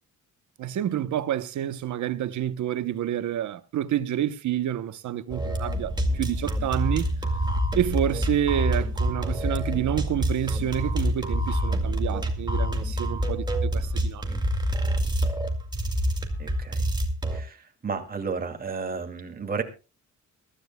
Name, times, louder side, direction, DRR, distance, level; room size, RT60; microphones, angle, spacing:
voice 1, 0.6-7.1 7.7-14.3, right 11 dB, 70° right, 0.9 m, -28 dB
sound 1, 5.3-17.4, equal, 15° right, 2.1 m, -27 dB
voice 2, 16.4-16.8 17.3-19.6, right 5 dB, 30° right, 2.4 m, -32 dB
23.5 x 13.0 x 2.2 m
cardioid pair, 140°, 30 cm